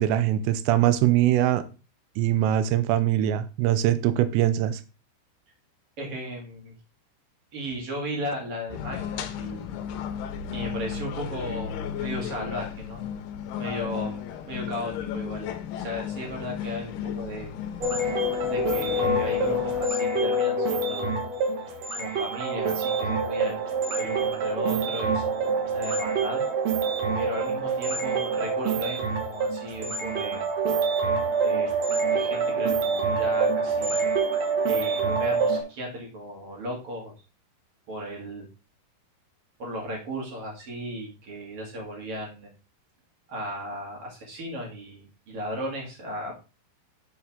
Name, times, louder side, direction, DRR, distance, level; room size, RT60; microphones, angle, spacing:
voice 1, 0.0-1.6 2.2-4.8, right 12 dB, 85° right, 12 dB, 2.9 m, -22 dB
voice 2, 6.0-6.7 7.5-9.7 10.5-13.0 13.6-17.6 18.5-21.1 21.4-21.5 21.9-23.7 24.0-26.4 27.1-30.5 31.4-31.7 32.0-34.1 34.6-37.1 37.9-38.5 39.6-42.5 43.3-46.4, equal, 45° right, 0 dB, 2.3 m, -36 dB
sound 1, 8.7-19.9, left 8 dB, 75° left, 2.7 m, -34 dB
sound 2, 17.8-35.6, right 3 dB, 70° right, 1.6 m, -26 dB
9.9 x 4.7 x 3.5 m, 0.31 s
omnidirectional pair, 4.9 m